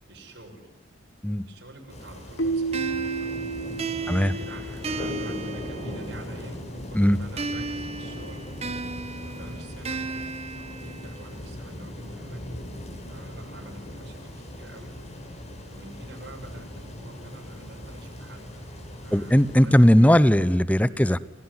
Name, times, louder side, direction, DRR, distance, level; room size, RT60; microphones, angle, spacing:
voice 1, 0.1-0.7 1.5-3.3 4.0-8.5 9.2-10.1 10.5-12.4 13.1-14.9 15.7-18.5 19.0-20.3 20.9-21.0, right 1 dB, 70° right, -1 dB, 6.8 m, -47 dB
sound 1, 1.9-20.5, left 1 dB, 35° left, 5.9 m, -39 dB
Keyboard (musical), 2.4-5.2, right 4 dB, 70° left, 1.4 m, -31 dB
sound 2, 2.7-6.4 7.4-11.4, right 3 dB, 35° right, 1.4 m, -35 dB
voice 2, 19.1-21.2, equal, 10° left, 16 dB, 0.9 m, -18 dB
30.0 x 19.0 x 9.8 m, 1.0 s
head